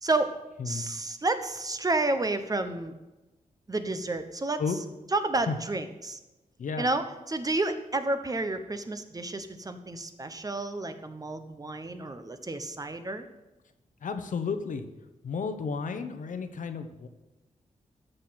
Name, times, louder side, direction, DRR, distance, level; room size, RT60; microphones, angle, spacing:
voice 1, 0.0-0.4 0.6-2.9 3.7-4.6 5.1-6.2 6.8-13.3, right 2 dB, 25° right, 9 dB, 1.1 m, -30 dB
voice 2, 14.0-14.9 15.2-17.1, left 5 dB, 75° left, 8 dB, 1.1 m, -32 dB
13.0 x 6.8 x 5.9 m, 1.0 s
wide cardioid pair, 90°, 13 cm